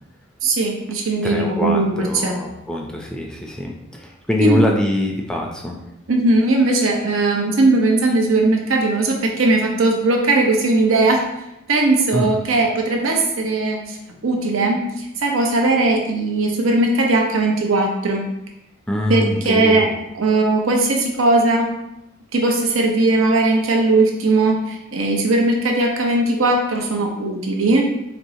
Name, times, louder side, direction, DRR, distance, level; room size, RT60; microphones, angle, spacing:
voice 1, 0.4-2.4 4.4-4.6 6.1-11.3 11.7-14.0 14.2-18.3 19.1-19.9 20.1-21.7 22.3-27.9, right 2 dB, 85° right, 1 dB, 0.7 m, -18 dB
voice 2, 1.2-5.8 12.1-12.4 18.9-20.0, left 1 dB, 5° left, 0 dB, 0.4 m, -23 dB
4.4 x 3.0 x 2.7 m, 0.86 s
head